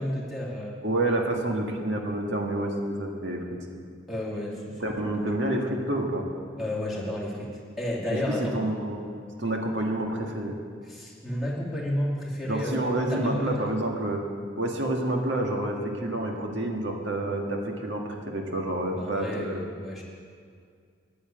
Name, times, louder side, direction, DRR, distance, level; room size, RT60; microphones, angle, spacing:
voice 1, 0.0-0.8 4.1-4.8 6.6-8.6 10.8-13.5 18.9-20.0, left 1 dB, ahead, -5 dB, 2.4 m, -31 dB
voice 2, 0.8-3.4 4.8-6.2 8.1-9.1 9.4-10.6 12.5-14.2 14.6-19.6, right 1 dB, 75° right, 1 dB, 1.8 m, -28 dB
10.0 x 8.9 x 8.8 m, 2.2 s
head